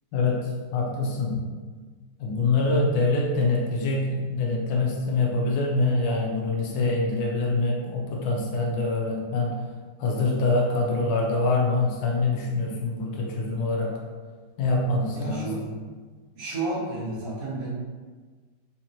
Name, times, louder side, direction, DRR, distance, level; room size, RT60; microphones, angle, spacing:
voice 1, 0.1-1.5 2.2-9.6 10.0-14.0 14.6-15.6, left 3 dB, 90° left, -2 dB, 1.4 m, -25 dB
voice 2, 15.1-15.9 16.4-17.7, right 2 dB, 60° right, -7 dB, 1.5 m, -31 dB
4.0 x 2.9 x 2.5 m, 1.5 s
omnidirectional pair, 2.1 m